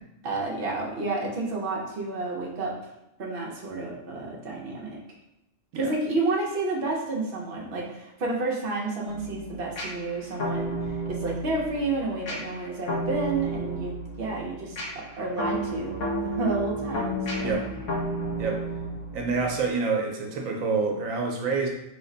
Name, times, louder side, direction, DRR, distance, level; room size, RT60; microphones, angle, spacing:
voice 1, 0.2-2.8 3.2-5.0 5.7-10.8 11.1-17.6, right 3 dB, 55° right, -2 dB, 0.8 m, -30 dB
sound 1, 9.1-19.7, right 1 dB, 70° left, 1.2 m, -32 dB
voice 2, 19.1-21.7, right 4 dB, 85° right, 1 dB, 1.0 m, -27 dB
3.2 x 2.1 x 3.7 m, 0.87 s
omnidirectional pair, 1.4 m